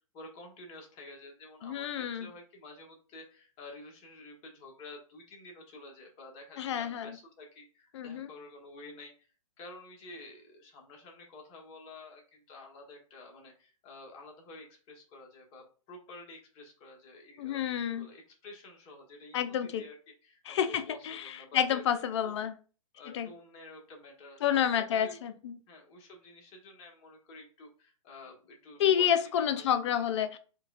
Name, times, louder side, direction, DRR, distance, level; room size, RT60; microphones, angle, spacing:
voice 1, 0.1-9.3 9.6-17.6 17.9-20.0 20.2-21.8 22.2-22.3 22.9-25.2 25.7-30.1, left 2 dB, 30° left, 1 dB, 1.1 m, -50 dB
voice 2, 1.6-2.3 6.6-7.1 7.9-8.3 17.4-18.1 19.3-19.8 20.5-22.5 23.1-23.3 24.4-25.6 28.8-30.4, left 9 dB, 55° left, 10 dB, 0.5 m, -29 dB
4.5 x 2.2 x 2.4 m, 0.38 s
hypercardioid pair, 125°, 18 cm